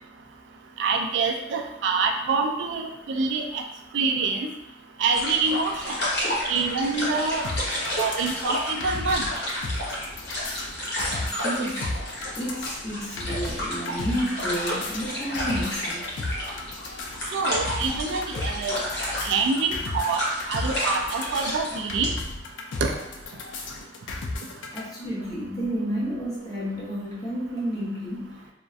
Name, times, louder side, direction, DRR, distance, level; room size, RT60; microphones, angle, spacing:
voice 1, 0.8-3.6 3.9-4.5 5.0-6.0 6.5-7.5 8.0-9.3 17.3-18.8 19.2-20.2 20.5-22.1 22.8-22.9, right 4 dB, 70° right, 4 dB, 0.3 m, -26 dB
sound 1, 5.1-22.1, equal, 60° left, 0.8 m, -31 dB
sound 2, 7.4-24.8, left 2 dB, 75° left, 0.3 m, -34 dB
voice 2, 11.2-11.9 12.4-16.1 24.7-28.3, equal, 20° left, -7 dB, 0.7 m, -31 dB
2.5 x 2.1 x 2.3 m, 0.91 s
head